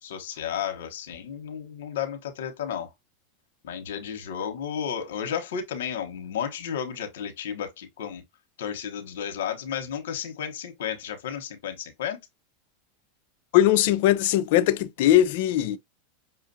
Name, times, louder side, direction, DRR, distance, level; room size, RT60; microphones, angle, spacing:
voice 1, 0.0-2.9 3.6-8.2 8.6-12.2, left 8 dB, 85° left, 1.0 m, -33 dB
voice 2, 13.5-15.8, left 13 dB, 65° left, 0.5 m, -20 dB
5.7 x 2.5 x 2.6 m
supercardioid pair, 125°, 0 cm